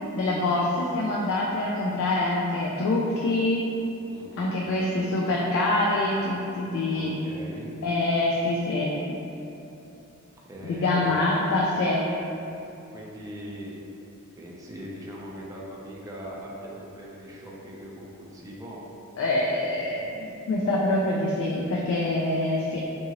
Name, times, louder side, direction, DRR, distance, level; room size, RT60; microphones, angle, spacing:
voice 1, 0.1-3.6 4.4-7.1 7.8-9.2 10.6-12.0 19.2-22.8, left 2 dB, 60° left, -3 dB, 0.3 m, -25 dB
voice 2, 4.1-4.8 6.9-7.7 10.4-11.5 12.9-13.7 14.4-18.8, equal, 15° right, -4 dB, 0.4 m, -40 dB
2.7 x 2.6 x 2.8 m, 2.9 s
head